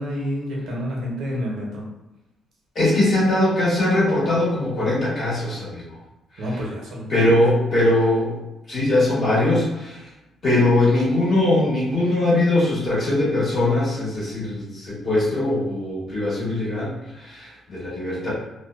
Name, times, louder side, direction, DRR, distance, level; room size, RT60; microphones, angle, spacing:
voice 1, 0.0-1.8 6.4-7.4, equal, 80° right, -2 dB, 0.7 m, -29 dB
voice 2, 2.7-6.0 6.4-6.6 7.1-8.3 8.7-10.0 10.4-18.3, left 1 dB, 50° left, -7 dB, 1.3 m, -21 dB
2.5 x 2.1 x 2.4 m, 0.97 s
cardioid pair, 90°, 0 cm